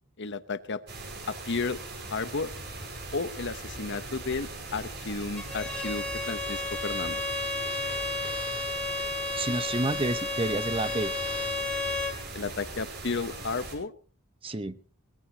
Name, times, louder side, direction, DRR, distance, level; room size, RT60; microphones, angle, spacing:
voice 1, 0.2-0.8 1.3-1.8 2.1-2.5 3.1-7.2 12.3-13.9, left 4 dB, 55° left, 13 dB, 1.0 m, -33 dB
sound 1, 0.9-13.8, right 2 dB, 50° right, 5.4 m, -40 dB
Bowed string instrument, 5.4-12.2, left 2 dB, 5° left, 2.5 m, -32 dB
voice 2, 9.4-11.1 14.4-14.8, right 2 dB, 25° right, 12 dB, 0.9 m, -29 dB
21.5 x 19.5 x 2.9 m, 0.39 s
head